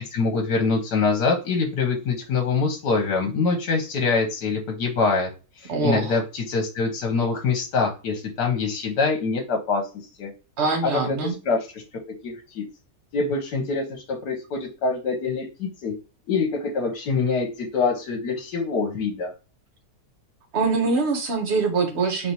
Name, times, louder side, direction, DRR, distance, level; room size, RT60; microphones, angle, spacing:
voice 1, 0.1-5.3 5.6-9.8 10.2-10.3 10.8-11.2 11.4-11.7 12.2-12.6 13.1-15.9 16.3-19.3, left 4 dB, 70° left, 1 dB, 1.4 m, -24 dB
voice 2, 5.7-6.2 10.6-11.3 20.5-22.3, right 4 dB, 45° right, 3 dB, 1.2 m, -23 dB
4.0 x 3.3 x 2.9 m, 0.32 s
omnidirectional pair, 1.9 m